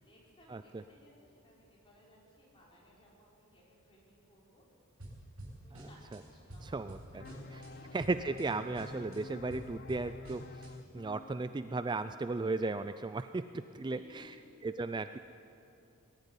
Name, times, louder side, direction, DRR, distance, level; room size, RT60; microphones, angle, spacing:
voice 1, 0.0-4.6 5.6-8.0 13.8-14.5, left 1 dB, 25° left, -5 dB, 5.8 m, -61 dB
sound 1, 5.0-6.2 6.5-7.7 8.0-8.4 8.7-10.7, right 1 dB, 80° right, 7.0 m, -49 dB
voice 2, 6.6-7.2 7.9-10.7 10.9-14.3 14.6-15.2, right 3 dB, 20° right, 11 dB, 0.4 m, -35 dB
sound 2, 7.2-12.6, left 2 dB, 45° left, 0.5 m, -50 dB
20.5 x 13.5 x 10.0 m, 2.7 s
head